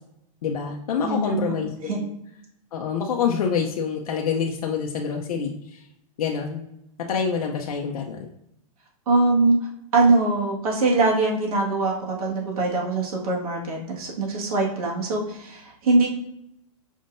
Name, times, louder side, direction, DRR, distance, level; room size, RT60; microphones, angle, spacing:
voice 1, 0.4-2.1 2.7-5.8 6.2-6.6 7.1-8.3, left 6 dB, 85° left, 1 dB, 0.6 m, -26 dB
voice 2, 1.0-1.5 1.8-2.0 9.0-9.6 9.9-16.1, right 3 dB, 75° right, -2 dB, 1.7 m, -22 dB
5.3 x 3.6 x 2.5 m, 0.80 s
supercardioid pair, 165°, 19 cm